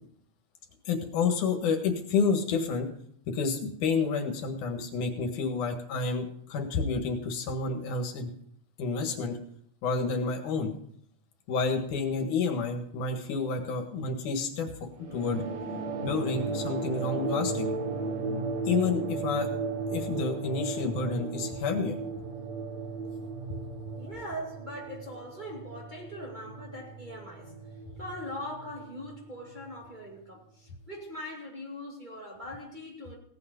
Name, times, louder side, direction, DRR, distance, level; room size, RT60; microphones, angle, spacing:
voice 1, 0.8-2.9 3.3-8.3 8.8-9.4 9.8-10.7 11.5-15.4 16.0-17.7 18.6-19.5 19.9-22.0, left 4 dB, 90° left, 3.2 m, -29 dB
sound 1, 15.0-29.9, right 3 dB, 65° right, 3.1 m, -35 dB
voice 2, 23.9-27.5 28.0-33.2, equal, 15° right, 2.1 m, -41 dB
17.0 x 8.9 x 5.2 m
omnidirectional pair, 3.4 m